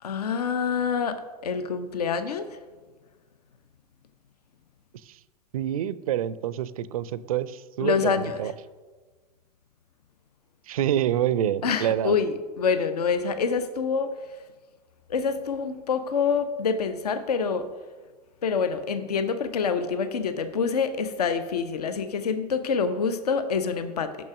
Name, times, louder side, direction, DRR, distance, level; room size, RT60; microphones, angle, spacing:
voice 1, 0.0-2.6 7.8-8.5 11.6-14.2 15.1-17.7 18.4-24.2, left 5 dB, 70° left, 11 dB, 0.6 m, -26 dB
voice 2, 5.5-8.5 10.7-12.2, right 11 dB, 60° right, 17 dB, 0.4 m, -27 dB
6.2 x 5.8 x 5.9 m, 1.4 s
figure-of-eight pair, 95°, 21 cm